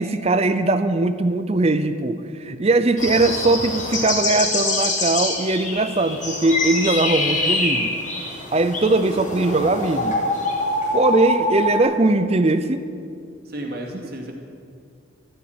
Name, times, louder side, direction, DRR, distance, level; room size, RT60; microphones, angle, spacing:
voice 1, 0.0-8.0 8.5-10.2 10.9-12.9, right 2 dB, 30° right, 11 dB, 0.6 m, -20 dB
sound 1, 3.0-11.8, left 2 dB, 40° left, 2.9 m, -25 dB
voice 2, 13.4-14.3, right 1 dB, 50° right, 1 dB, 2.5 m, -32 dB
14.0 x 10.0 x 9.6 m, 2.3 s
head